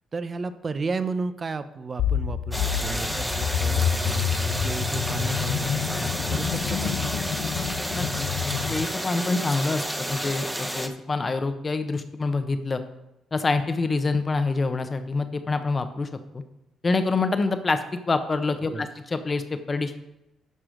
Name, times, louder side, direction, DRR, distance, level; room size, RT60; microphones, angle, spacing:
voice 1, 0.1-7.1 18.6-18.9, right 4 dB, 35° right, 12 dB, 0.7 m, -33 dB
sound 1, 2.0-8.9, left 8 dB, 70° left, 0.6 m, -28 dB
sound 2, 2.5-10.9, equal, 5° right, 1.0 m, -31 dB
voice 2, 7.9-12.8 13.3-16.1 16.3-16.4 16.8-17.8 18.1-20.0, left 3 dB, 30° left, 9 dB, 1.0 m, -26 dB
12.0 x 4.9 x 5.0 m, 0.93 s
cardioid pair, 90°, 0 cm